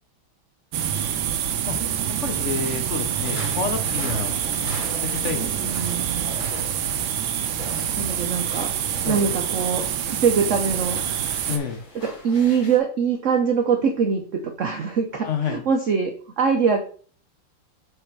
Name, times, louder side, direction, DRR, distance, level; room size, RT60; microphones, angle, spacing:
sound 1, 0.7-11.6, right 9 dB, 85° right, 1.5 m, -26 dB
voice 1, 0.8-1.3 1.7-1.8 2.2-4.4 5.0-5.9 9.0-9.2 11.5-11.8 15.3-15.6, left 6 dB, 50° left, 6 dB, 1.0 m, -29 dB
sound 2, 3.2-12.8, equal, 90° left, 3.2 m, -39 dB
voice 2, 5.6-6.4 8.0-8.7 9.0-11.3 12.0-16.8, right 6 dB, 60° right, 5 dB, 0.8 m, -23 dB
6.7 x 3.8 x 4.6 m, 0.43 s
omnidirectional pair, 2.1 m